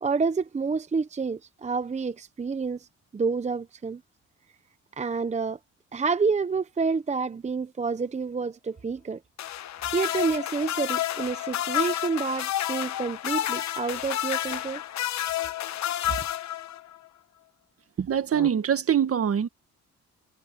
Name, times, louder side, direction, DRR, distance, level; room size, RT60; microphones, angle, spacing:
voice 1, 0.0-2.9 3.1-4.0 5.0-5.6 5.9-9.2 9.9-14.8, right 4 dB, 25° right, 0.7 m, -28 dB
sound 1, 9.4-17.0 18.3-18.5, left 12 dB, 65° left, 1.0 m, -30 dB
voice 2, 18.0-19.5, right 9 dB, 50° right, 1.8 m, -24 dB
cardioid pair, 90°, 30 cm